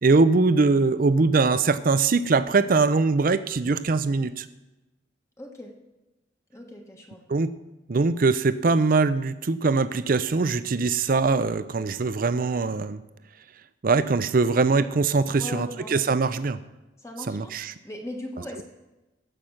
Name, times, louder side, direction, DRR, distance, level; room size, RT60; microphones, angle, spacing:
voice 1, 0.0-4.5 7.3-7.5 7.9-13.0 13.8-16.6 17.3-17.7, right 4 dB, 50° right, 13 dB, 0.5 m, -22 dB
voice 2, 5.4-5.7 6.5-7.2 15.3-15.9 17.0-17.5 17.8-18.6, left 1 dB, 15° left, 1 dB, 1.2 m, -38 dB
15.5 x 6.0 x 6.4 m, 1.1 s
head